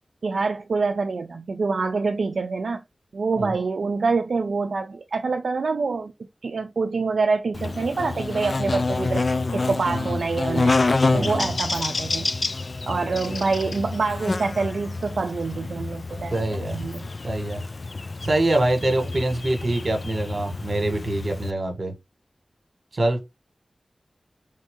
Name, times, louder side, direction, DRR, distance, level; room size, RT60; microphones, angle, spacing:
voice 1, 0.2-2.8 3.1-6.1 6.4-9.3 9.5-10.8 11.1-12.3 12.9-16.3 16.7-17.1, right 4 dB, 85° right, 0.4 m, -26 dB
Buzz, 7.5-21.5, left 3 dB, 55° left, 0.3 m, -27 dB
voice 2, 11.1-11.5 16.3-16.8 17.2-17.6 18.2-21.9 22.9-23.2, right 1 dB, 55° right, 1.5 m, -24 dB
3.4 x 2.7 x 3.6 m
wide cardioid pair, 70°, 0 cm